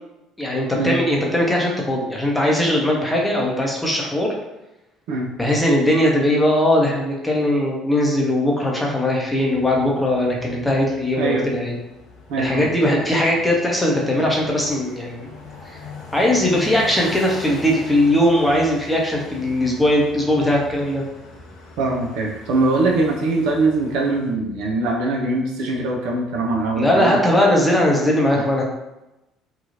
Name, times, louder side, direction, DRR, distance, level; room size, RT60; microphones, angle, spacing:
voice 1, 0.4-4.3 5.4-11.8 12.4-15.3 16.1-21.0 26.8-28.6, left 1 dB, 10° left, -2 dB, 0.7 m, -19 dB
sound 1, 9.5-24.3, left 3 dB, 60° left, 0.6 m, -41 dB
voice 2, 12.3-13.0 21.8-27.2 28.3-28.6, right 2 dB, 60° right, -1 dB, 0.5 m, -22 dB
2.8 x 2.3 x 2.7 m, 0.96 s
figure-of-eight pair, 55°, 0 cm